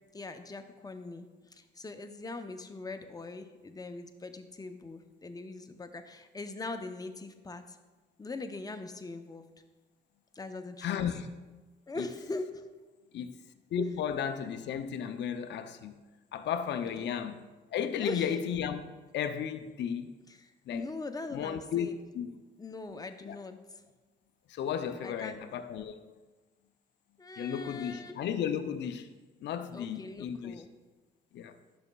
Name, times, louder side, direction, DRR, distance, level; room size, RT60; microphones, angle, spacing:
voice 1, 0.1-7.8 8.2-9.4 10.3-11.0 11.9-12.7 16.8-17.1 18.0-18.3 20.3-21.9 22.6-23.8 25.0-25.4 27.2-28.2 29.7-30.7, left 3 dB, 20° left, 0.6 m, -41 dB
voice 2, 10.8-11.3 12.0-12.1 13.1-13.3 13.7-15.9 16.3-17.5 17.7-20.1 20.7-20.9 21.3-21.9 22.1-22.3 23.3-23.4 24.5-26.0 27.4-29.1 29.4-30.6 31.3-31.5, left 8 dB, 60° left, 0.5 m, -34 dB
10.5 x 6.1 x 2.3 m
cardioid pair, 90°, 20 cm